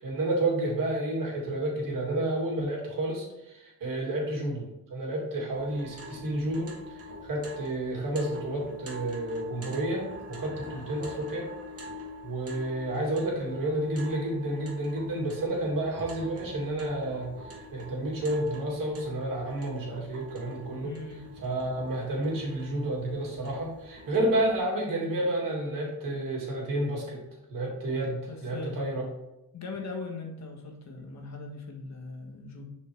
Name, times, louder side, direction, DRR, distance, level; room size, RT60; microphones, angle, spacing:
voice 1, 0.0-11.5 12.2-20.9 21.4-27.2 27.5-29.0, right 1 dB, 70° right, -2 dB, 2.3 m, -30 dB
sound 1, 5.5-24.6, equal, 45° right, 1.2 m, -45 dB
voice 2, 20.8-21.3 28.3-28.8 29.5-32.7, left 3 dB, 50° left, 2 dB, 1.3 m, -40 dB
6.5 x 4.6 x 3.4 m, 0.90 s
cardioid pair, 105°, 35 cm